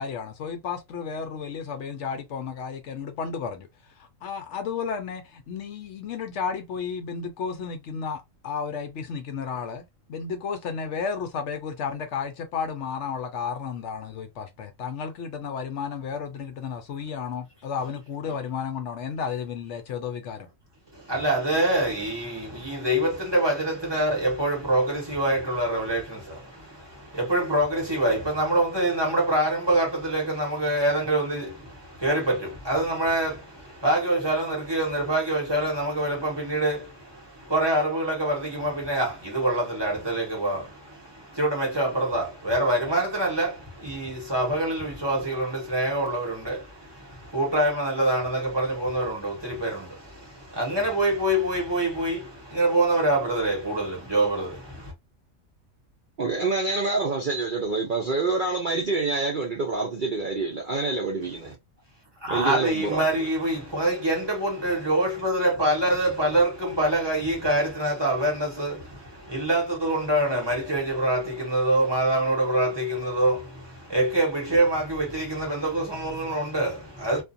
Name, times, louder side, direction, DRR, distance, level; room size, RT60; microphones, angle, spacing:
voice 1, 0.0-20.5, left 6 dB, 70° left, 0.8 m, -33 dB
voice 2, 20.9-54.9 62.2-77.2, right 1 dB, 20° right, 1.1 m, -25 dB
voice 3, 56.2-61.6 62.3-63.1, right 3 dB, 50° right, 0.7 m, -27 dB
2.5 x 2.4 x 2.5 m
omnidirectional pair, 1.4 m